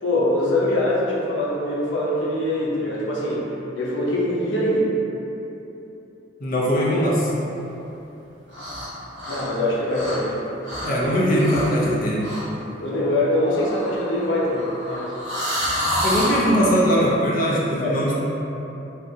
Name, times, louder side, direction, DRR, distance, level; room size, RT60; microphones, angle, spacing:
voice 1, 0.0-3.5 3.7-4.9 9.2-10.5 12.8-15.1 17.8-18.1, left 1 dB, 85° left, -5 dB, 0.7 m, -23 dB
voice 2, 6.4-7.3 10.8-12.3 16.0-18.2, equal, 50° left, -5 dB, 0.6 m, -20 dB
sound 1, 8.5-8.9 9.2-10.3 10.6-10.9 11.3-11.8 12.2-12.5 13.4-16.5, equal, 80° right, 1.0 m, -28 dB
3.3 x 2.5 x 2.7 m, 3.0 s
head